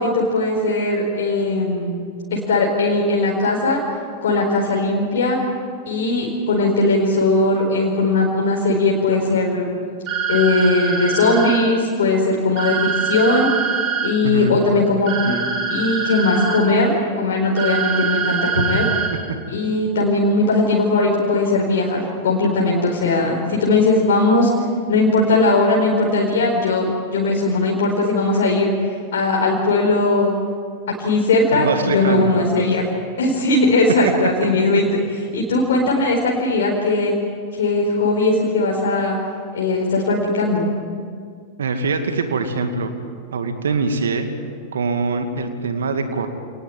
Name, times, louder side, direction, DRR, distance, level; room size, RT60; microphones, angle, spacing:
voice 1, 0.0-2.0 2.3-3.8 4.2-5.4 5.9-9.7 10.3-13.5 14.0-15.4 15.7-18.9 19.5-24.5 24.9-30.3 31.0-32.8 33.2-34.8 35.3-37.1 37.5-39.1 39.5-40.7, left 2 dB, 60° left, -2 dB, 4.6 m, -19 dB
sound 1, 10.1-11.6 12.6-14.1 15.1-16.6 17.6-19.1, right 6 dB, 40° right, 5.9 m, -23 dB
voice 2, 14.2-14.6 18.5-18.8 19.3-19.4 31.5-32.3 34.6-34.7 41.6-42.9 43.3-44.3 44.7-46.3, right 4 dB, 65° right, 7 dB, 2.4 m, -23 dB
27.5 x 19.5 x 9.1 m, 2.1 s
figure-of-eight pair, 90°, 0 cm